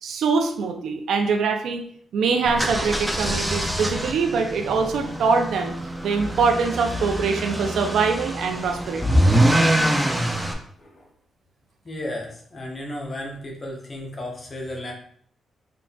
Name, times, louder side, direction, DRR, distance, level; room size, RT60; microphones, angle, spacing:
voice 1, 0.0-1.8 2.1-9.0, right 5 dB, 80° right, 5 dB, 0.5 m, -23 dB
sound 1, 2.4-10.5, right 1 dB, 10° right, 0.6 m, -24 dB
voice 2, 10.8-11.1 11.8-14.9, left 1 dB, 35° left, 0 dB, 1.1 m, -34 dB
3.7 x 3.7 x 2.4 m, 0.62 s
cardioid pair, 70°, 0 cm